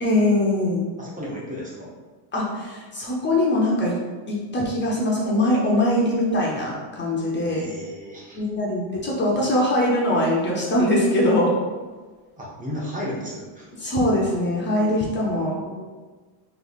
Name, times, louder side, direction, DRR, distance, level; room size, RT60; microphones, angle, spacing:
voice 1, 0.0-0.8 2.3-3.9 4.3-7.7 8.3-11.5 13.8-15.6, left 1 dB, 25° left, -4 dB, 0.7 m, -22 dB
voice 2, 1.0-1.9 7.4-8.4 12.4-13.7 15.5-15.9, equal, 15° right, -4 dB, 0.9 m, -34 dB
3.1 x 3.1 x 4.0 m, 1.3 s
cardioid pair, 140°, 48 cm